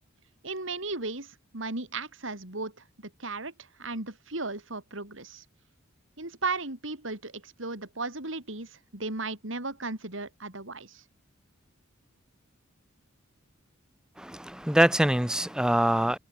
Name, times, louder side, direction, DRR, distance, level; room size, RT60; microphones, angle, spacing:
voice 1, 0.4-5.4 6.2-11.0, right 3 dB, 65° right, 4.7 m, -36 dB
voice 2, 14.2-16.2, right 1 dB, 5° right, 0.6 m, -24 dB
head